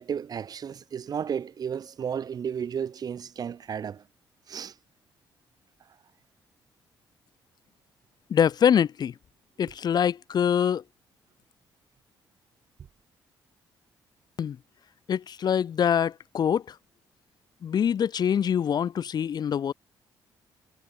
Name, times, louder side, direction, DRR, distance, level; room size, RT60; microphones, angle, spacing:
voice 1, 0.0-4.1 4.5-4.8 5.8-6.0, right 7 dB, 55° right, 3.0 m, -33 dB
voice 2, 8.3-9.1 9.6-10.8 14.4-14.6 15.1-16.7 17.6-19.7, left 8 dB, 60° left, 4.0 m, -24 dB
cardioid pair, 85°, 8 cm